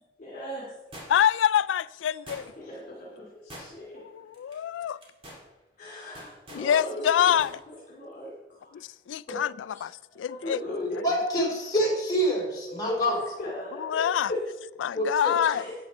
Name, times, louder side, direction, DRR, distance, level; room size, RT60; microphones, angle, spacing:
voice 1, 0.2-0.7 2.6-4.0 5.8-8.9 9.3-9.4 9.7-9.8 10.2-11.1 12.7-14.4 15.5-15.7, left 1 dB, 45° left, 2.7 m, -37 dB
sound 1, 0.9-1.4 2.3-2.8 3.5-4.0 4.3-4.5 5.0-5.5 6.2-6.7 7.4-7.6 7.9-8.0, equal, 30° right, 2.6 m, -45 dB
voice 2, 1.1-2.5 4.0-5.0 6.5-7.5 9.1-9.5 9.8-10.6 13.8-14.3 14.8-15.6, left 9 dB, 90° left, 0.3 m, -25 dB
voice 3, 11.0-13.2 14.9-15.3, equal, 20° left, 3.5 m, -26 dB
12.0 x 8.8 x 4.3 m
head